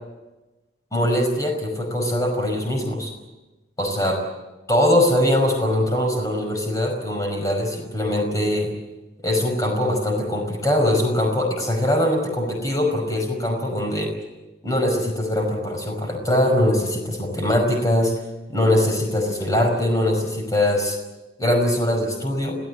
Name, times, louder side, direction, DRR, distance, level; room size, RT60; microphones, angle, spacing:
voice 1, 0.9-3.1 3.8-4.2 4.7-8.7 9.2-14.1 14.6-18.1 18.5-21.0 21.4-22.5, left 1 dB, 20° left, 2 dB, 5.4 m, -22 dB
27.5 x 18.0 x 8.4 m, 1.1 s
head